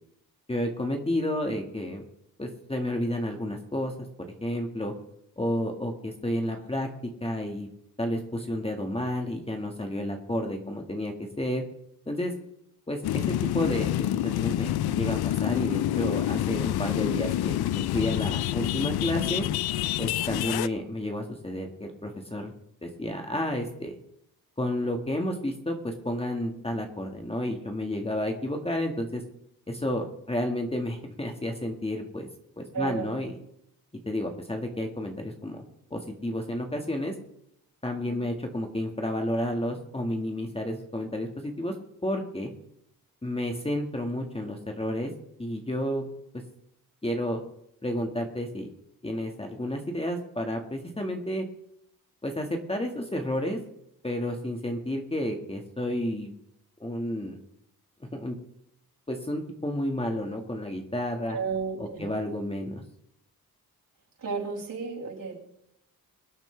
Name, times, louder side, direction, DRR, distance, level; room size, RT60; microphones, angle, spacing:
voice 1, 0.5-2.0 2.4-3.9 4.4-4.9 5.4-6.9 7.2-7.7 8.0-11.6 12.1-12.3 12.9-13.2 13.5-19.4 20.0-22.5 22.8-24.0 24.6-29.2 29.7-32.3 32.6-33.3 34.1-35.6 35.9-37.1 37.8-41.7 42.0-42.5 43.2-45.1 45.4-46.1 47.0-47.4 47.8-48.7 49.0-51.5 52.2-53.6 54.0-56.3 56.8-57.4 58.1-58.4 59.1-61.4 61.8-62.8, left 1 dB, 15° left, 3 dB, 1.8 m, -31 dB
voice 2, 6.4-6.7 32.7-33.2 38.0-38.2 61.3-62.1 64.2-65.4, right 5 dB, 60° right, -4 dB, 6.6 m, -33 dB
sound 1, 13.0-20.7, left 13 dB, 75° left, 0.5 m, -27 dB
23.0 x 8.8 x 3.4 m, 0.77 s
cardioid pair, 80°, 38 cm